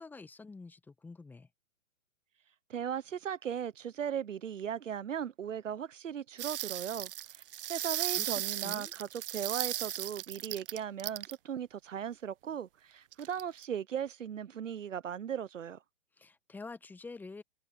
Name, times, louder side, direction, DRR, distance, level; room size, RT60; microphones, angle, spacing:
voice 1, 0.0-1.5 8.1-8.3 8.6-8.9 16.1-17.4, left 3 dB, 5° left, 1.0 m, -47 dB
voice 2, 2.7-7.4 7.7-15.8, right 8 dB, 75° right, 0.9 m, -38 dB
sound 1, 6.4-11.3 13.1-13.6, right 13 dB, 45° right, 1.2 m, -36 dB
figure-of-eight pair, 125°, 38 cm